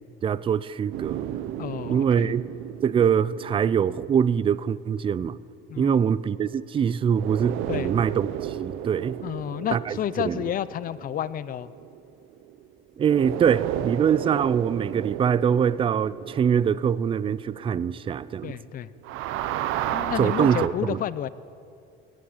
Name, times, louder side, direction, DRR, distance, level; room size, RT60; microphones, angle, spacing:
voice 1, 0.2-1.3 1.9-2.4 2.8-5.4 5.8-9.2 9.7-10.4 13.0-18.6 20.2-21.0, right 8 dB, 25° right, 19 dB, 0.3 m, -24 dB
sound 1, 0.9-5.4 7.1-12.6 13.0-18.7 19.0-20.7, right 12 dB, 75° right, 0.7 m, -33 dB
voice 2, 1.6-2.3 5.7-6.0 7.7-7.9 9.2-11.7 18.4-18.9 19.9-21.3, left 11 dB, 40° left, 17 dB, 0.5 m, -30 dB
17.0 x 7.7 x 8.7 m, 2.6 s
cardioid pair, 115°, 21 cm